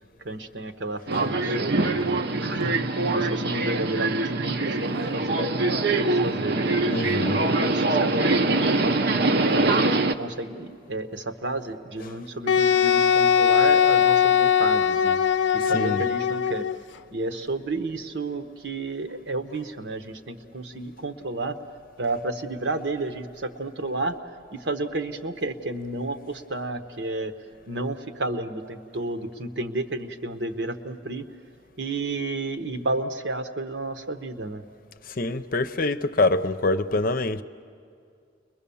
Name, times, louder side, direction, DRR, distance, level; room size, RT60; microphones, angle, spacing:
voice 1, 0.2-2.7 3.1-6.6 7.1-9.2 9.5-15.2 15.5-16.7 17.1-21.6 22.0-24.2 24.5-27.3 27.7-31.3 31.8-34.6, right 2 dB, 75° right, 7 dB, 1.2 m, -31 dB
Subway metro underground, 1.1-10.1, right 2 dB, 60° right, 0.7 m, -23 dB
voice 2, 6.9-7.4 12.0-12.1 15.6-16.0 35.1-37.4, left 2 dB, 50° left, 11 dB, 0.7 m, -25 dB
Wind instrument woodwind instrument, 12.5-16.8, left 8 dB, 90° left, 0.6 m, -20 dB
30.0 x 22.0 x 7.1 m, 2.3 s
head